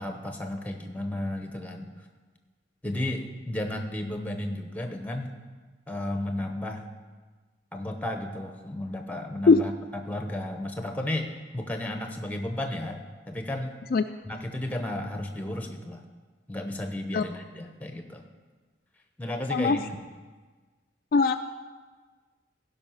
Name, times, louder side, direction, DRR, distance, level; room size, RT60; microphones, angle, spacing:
voice 1, 0.0-2.0 2.8-5.3 5.9-6.8 7.7-9.7 10.0-13.7 14.3-16.0 16.5-18.2 19.2-19.8, left 1 dB, 10° left, 5 dB, 0.9 m, -33 dB
voice 2, 19.5-19.8 21.1-21.4, left 4 dB, 50° left, 7 dB, 0.3 m, -20 dB
16.0 x 5.5 x 5.7 m, 1.4 s
head